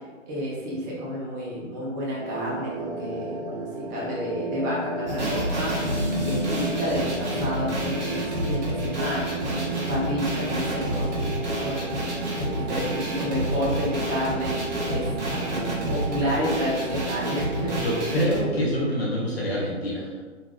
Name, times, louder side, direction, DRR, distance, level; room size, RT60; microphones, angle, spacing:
voice 1, 0.3-5.7 6.2-11.1 11.6-14.5 14.9-17.7, equal, 15° right, -5 dB, 0.5 m, -30 dB
sound 1, 2.2-18.5, right 2 dB, 55° right, 1.3 m, -33 dB
sound 2, 5.1-18.4, right 1 dB, 35° right, 1.2 m, -29 dB
voice 2, 17.7-20.1, equal, 55° left, -5 dB, 1.0 m, -26 dB
4.0 x 2.3 x 3.5 m, 1.4 s
figure-of-eight pair, 125°, 38 cm